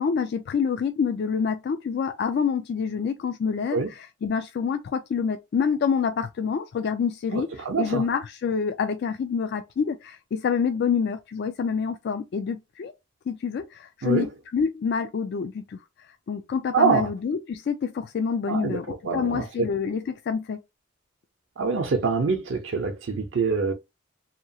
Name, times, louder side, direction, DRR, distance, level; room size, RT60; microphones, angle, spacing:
voice 1, 0.0-12.9 13.3-15.8 16.3-20.6, left 6 dB, 55° left, 0.3 m, -27 dB
voice 2, 7.3-8.0 14.0-14.3 16.7-17.1 18.5-19.4 21.6-23.7, right 5 dB, 70° right, 0.6 m, -25 dB
2.9 x 2.3 x 2.7 m
head